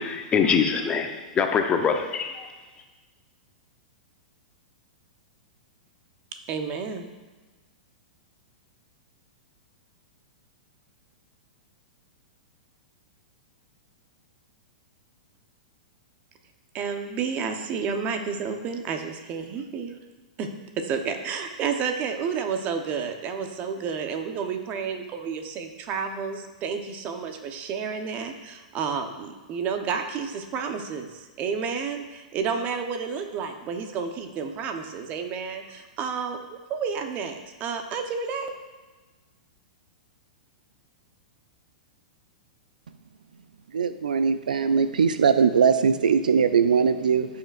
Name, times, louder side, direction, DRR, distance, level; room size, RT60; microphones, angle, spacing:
voice 1, 0.0-2.5, left 6 dB, 25° left, 5 dB, 0.9 m, -24 dB
voice 2, 6.5-7.1 16.7-19.9 20.4-20.5 20.8-38.5, right 6 dB, 35° right, 6 dB, 1.0 m, -31 dB
voice 3, 43.7-47.3, right 6 dB, 80° right, 11 dB, 0.4 m, -21 dB
14.5 x 5.7 x 2.6 m, 1.3 s
hypercardioid pair, 110°, 4 cm